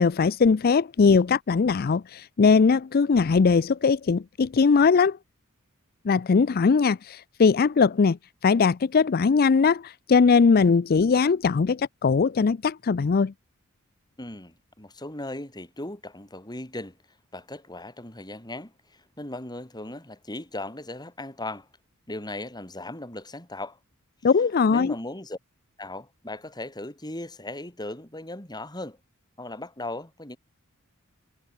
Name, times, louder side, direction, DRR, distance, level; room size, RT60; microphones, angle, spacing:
voice 1, 0.0-5.2 6.1-8.2 8.4-13.3 24.2-24.9, left 5 dB, 45° left, 0.4 m, -20 dB
voice 2, 14.2-17.0 17.3-21.7 22.1-23.8 24.7-25.4 25.8-29.0 29.4-30.4, left 2 dB, 20° left, 4.4 m, -37 dB
head